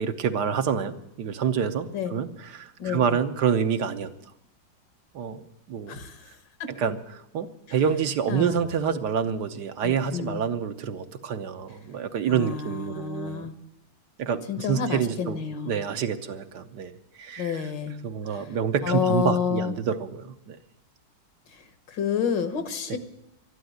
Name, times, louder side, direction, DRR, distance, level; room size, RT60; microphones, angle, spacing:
voice 1, 0.0-4.1 5.1-6.0 6.7-7.0 7.3-13.5 14.2-16.9 17.2-17.6 18.0-20.6 22.9-23.0, right 7 dB, 70° right, 8 dB, 1.5 m, -27 dB
voice 2, 2.8-3.2 5.9-6.2 6.6-6.7 8.3-9.0 9.8-10.4 12.3-13.6 14.5-15.7 17.4-17.9 18.3-18.5 18.8-19.7 21.9-23.0, left 7 dB, 75° left, 10 dB, 2.1 m, -29 dB
12.5 x 11.5 x 9.4 m, 0.86 s
omnidirectional pair, 2.0 m